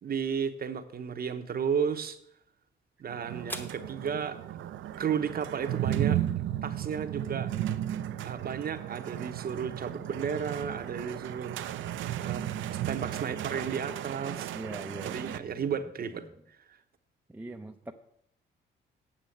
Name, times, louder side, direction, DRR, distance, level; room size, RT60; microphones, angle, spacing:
voice 1, 0.0-2.2 3.0-4.4 5.0-7.5 8.2-11.9 12.2-12.4 12.7-14.5 15.0-16.3 16.7-16.8, right 7 dB, 50° right, 8 dB, 0.9 m, -33 dB
sound 1, 1.0-9.2, left 1 dB, 10° left, 1.2 m, -52 dB
sound 2, 3.1-15.4, right 12 dB, 75° right, 0.6 m, -34 dB
voice 2, 14.5-15.7 16.0-16.3 17.3-17.9, right 1 dB, 10° right, 3 dB, 0.6 m, -43 dB
8.7 x 6.0 x 7.8 m, 0.71 s
cardioid pair, 90°, 20 cm